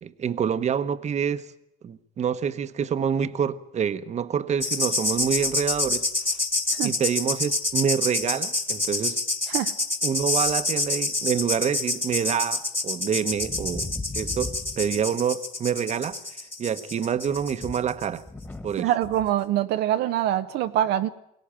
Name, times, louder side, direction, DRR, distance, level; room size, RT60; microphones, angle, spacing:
voice 1, 0.0-1.5 1.8-6.4 6.8-9.2 10.0-16.2 16.6-18.2 18.6-18.9, right 7 dB, 40° right, 1.0 m, -27 dB
sound 1, 4.6-18.7 19.0-19.3, left 2 dB, 15° left, 1.9 m, -28 dB
voice 2, 18.8-21.1, right 12 dB, 75° right, 0.7 m, -24 dB
23.5 x 17.5 x 8.8 m
cardioid pair, 110°, 17 cm